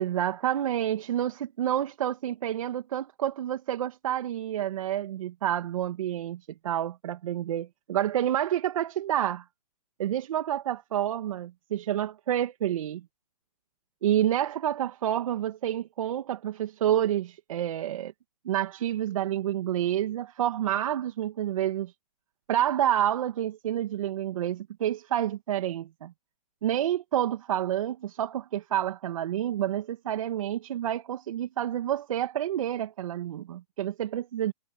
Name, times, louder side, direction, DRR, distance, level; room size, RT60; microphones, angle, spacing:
voice 1, 0.0-9.4 10.0-13.0 14.0-18.1 18.4-21.9 22.5-26.1 26.6-34.5, right 11 dB, 55° right, 2.4 m, -29 dB
hypercardioid pair, 150°, 20 cm